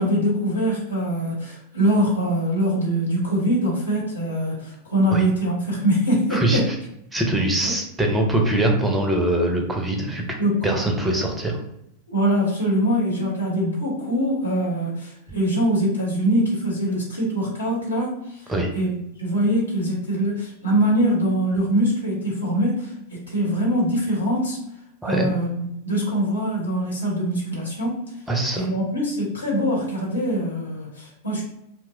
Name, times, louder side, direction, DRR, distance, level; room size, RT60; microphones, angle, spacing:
voice 1, 0.0-6.7 7.6-7.8 10.4-10.8 12.1-22.9 23.3-24.6 25.0-28.1 28.5-31.4, right 1 dB, 75° left, -4 dB, 0.9 m, -23 dB
voice 2, 6.3-6.8 7.1-10.2 10.6-11.6 18.5-18.7 25.0-25.2 28.3-28.7, right 1 dB, 10° right, 1 dB, 0.5 m, -22 dB
2.7 x 2.0 x 2.3 m, 0.81 s
figure-of-eight pair, 90°, 0 cm